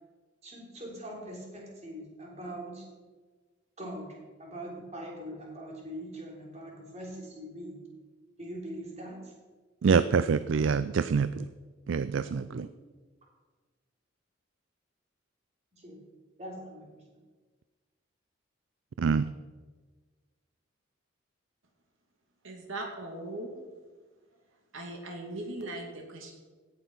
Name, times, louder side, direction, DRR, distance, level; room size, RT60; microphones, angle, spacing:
voice 1, 0.4-2.8 3.8-4.1 4.4-7.8 8.4-9.3 12.5-12.6 15.7-16.0 16.4-17.0, right 1 dB, 35° right, -2 dB, 3.3 m, -42 dB
voice 2, 9.8-11.4 11.9-12.7 19.0-19.3, right 5 dB, 70° right, 14 dB, 0.4 m, -26 dB
voice 3, 22.4-23.5 24.7-26.3, right 2 dB, 90° right, 1 dB, 2.5 m, -39 dB
17.0 x 6.7 x 5.6 m, 1.4 s
head